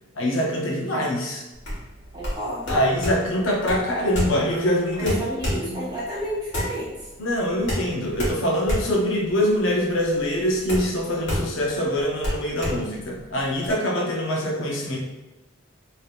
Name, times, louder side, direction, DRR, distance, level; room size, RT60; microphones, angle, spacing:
voice 1, 0.2-1.4 2.7-5.2 5.7-5.9 7.2-15.0, equal, 90° left, -1 dB, 0.7 m, -24 dB
sound 1, 1.5-13.7, equal, 65° left, 1.4 m, -30 dB
voice 2, 2.1-2.7 5.0-7.1, equal, 20° right, -8 dB, 1.4 m, -31 dB
3.3 x 2.8 x 2.4 m, 1.1 s
head